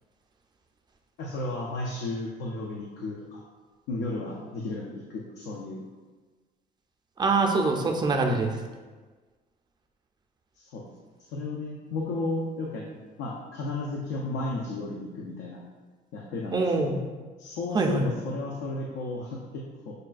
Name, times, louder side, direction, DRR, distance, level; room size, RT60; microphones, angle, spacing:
voice 1, 1.2-3.4 3.9-5.9 10.6-10.8 11.3-12.8 13.2-15.6 16.1-17.0 17.4-19.9, left 2 dB, 85° left, -2 dB, 0.5 m, -34 dB
voice 2, 7.2-8.6 16.5-17.0 17.7-18.1, right 3 dB, 25° right, 2 dB, 0.4 m, -24 dB
6.3 x 2.2 x 2.4 m, 1.4 s
cardioid pair, 110°, 17 cm